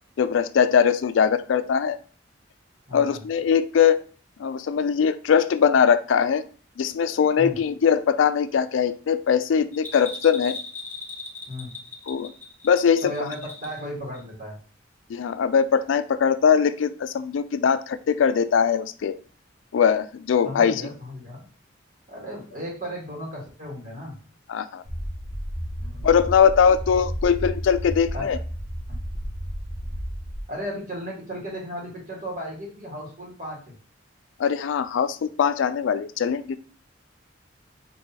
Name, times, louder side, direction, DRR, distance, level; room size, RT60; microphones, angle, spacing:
voice 1, 0.2-2.0 2.9-4.0 4.4-6.4 6.8-10.6 12.1-12.3 12.6-13.1 15.1-19.2 19.7-20.8 24.5-24.8 26.0-28.4 34.4-36.6, left 7 dB, 80° left, 13 dB, 0.3 m, -21 dB
voice 2, 2.9-3.2 7.4-7.5 11.5-11.7 13.0-14.5 20.4-21.5 22.1-24.2 25.8-26.1 28.1-28.4 30.5-33.7, equal, 40° right, -4 dB, 1.7 m, -35 dB
Bell, 9.7-13.9 14.1-14.2, left 3 dB, 10° left, 0.6 m, -38 dB
sound 1, 24.8-30.4, equal, 70° right, 1.1 m, -32 dB
5.5 x 2.9 x 2.8 m, 0.40 s
head